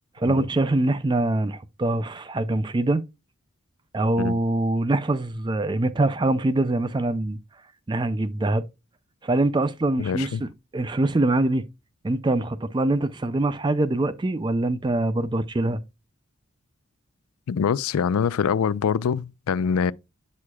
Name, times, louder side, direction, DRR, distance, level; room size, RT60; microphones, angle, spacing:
voice 1, 0.2-3.0 3.9-7.4 7.9-8.6 9.2-11.7 12.0-15.8, right 2 dB, 20° right, 0.4 m, -24 dB
voice 2, 10.0-10.4 17.5-19.9, left 7 dB, 85° left, 0.4 m, -24 dB
8.5 x 6.3 x 2.2 m
head